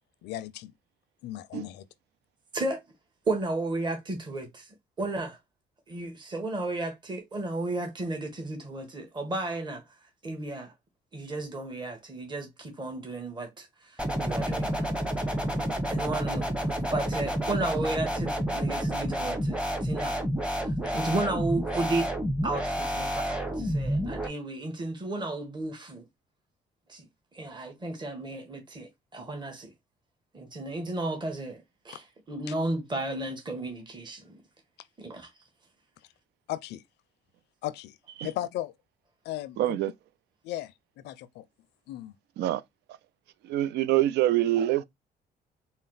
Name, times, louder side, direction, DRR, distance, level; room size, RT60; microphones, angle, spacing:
voice 1, 0.2-0.7 1.2-1.8 36.5-36.8 37.6-38.0 38.2-38.7 39.2-39.8 40.4-41.4 41.9-42.2, left 14 dB, 80° left, 0.5 m, -36 dB
voice 2, 3.3-4.7 5.0-5.4 5.9-9.8 10.2-10.7 11.1-14.8 15.9-20.2 20.6-22.1 22.4-26.0 26.9-27.1 27.3-29.7 30.3-34.4 35.0-35.3, right 2 dB, 25° right, 1.3 m, -33 dB
sound 1, 14.0-24.3, equal, 5° right, 0.9 m, -29 dB
voice 3, 39.6-39.9 42.4-42.6 43.4-44.8, right 13 dB, 80° right, 0.4 m, -25 dB
4.2 x 2.0 x 3.9 m
cardioid pair, 85°, 17 cm